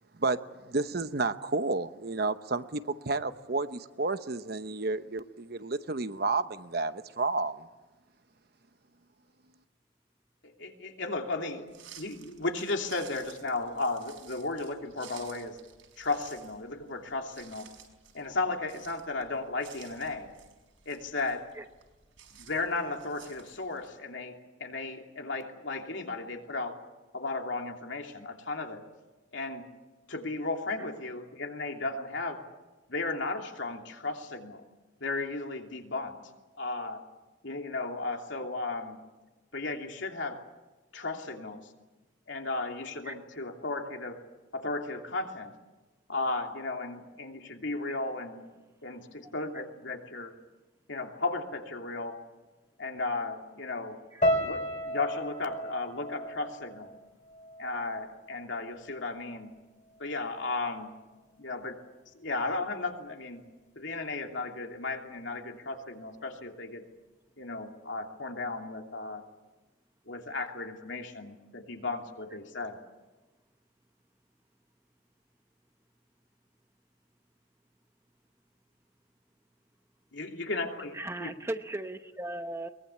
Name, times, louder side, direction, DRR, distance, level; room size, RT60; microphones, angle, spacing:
voice 1, 0.1-7.7, right 3 dB, 50° right, 11 dB, 0.9 m, -31 dB
voice 2, 10.4-11.7 11.9-15.6 16.0-17.7 18.1-20.3 20.8-21.5 22.3-26.8 27.1-28.8 29.3-29.7 30.1-32.4 32.9-34.6 35.0-36.2 36.6-37.0 37.4-39.0 39.5-40.4 40.9-41.7 42.3-44.2 44.5-45.5 46.1-48.5 48.8-50.3 50.9-52.2 52.8-54.0 54.4-56.9 57.6-59.5 60.0-60.9 61.4-61.8 62.1-63.4 63.8-66.8 67.4-69.2 70.1-72.8 80.1-80.9 81.2-81.3, left 3 dB, 70° left, 2 dB, 3.0 m, -35 dB
sound 1, 11.7-23.9, right 8 dB, 75° right, 5.6 m, -54 dB
sound 2, 54.2-58.4 58.7-59.5 60.0-60.3, equal, 40° left, 3.3 m, -34 dB
voice 3, 80.9-82.7, right 1 dB, 15° right, 8 dB, 0.9 m, -37 dB
23.0 x 22.0 x 8.6 m, 1.2 s
head